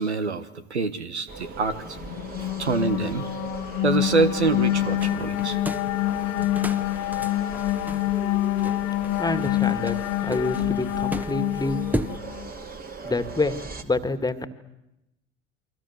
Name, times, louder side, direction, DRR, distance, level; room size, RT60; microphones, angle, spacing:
voice 1, 0.0-2.0 2.4-3.2 3.8-5.6, right 4 dB, 90° right, 11 dB, 1.5 m, -26 dB
sound 1, 1.3-13.8, right 3 dB, 25° right, 2.6 m, -39 dB
sound 2, 2.0-12.5, left 14 dB, 50° left, 0.9 m, -26 dB
sound 3, 5.0-12.2, right 1 dB, 5° right, 1.3 m, -36 dB
voice 2, 9.2-10.0 10.2-11.8 13.0-14.5, left 2 dB, 10° left, 11 dB, 2.0 m, -27 dB
29.0 x 23.5 x 7.3 m, 0.89 s
hypercardioid pair, 70°, 33 cm